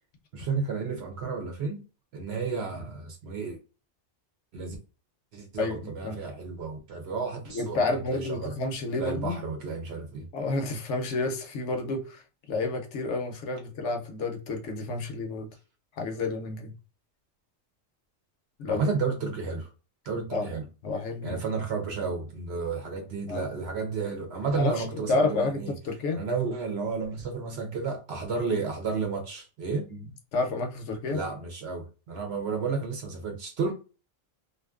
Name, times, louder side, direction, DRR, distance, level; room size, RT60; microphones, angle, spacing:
voice 1, 0.3-1.8 2.1-3.6 4.5-4.8 5.3-8.5 9.0-10.3 18.7-19.7 20.1-20.6 21.2-25.7 26.1-29.9 31.1-33.7, right 4 dB, 60° right, 0.7 m, -32 dB
voice 2, 5.6-6.2 7.5-9.4 10.3-15.5 15.9-16.7 18.6-18.8 20.3-20.5 20.8-21.4 23.3-23.6 24.5-26.2 29.9-30.0 30.3-31.2, left 3 dB, 65° left, 0.9 m, -30 dB
2.5 x 2.4 x 2.3 m
omnidirectional pair, 1.4 m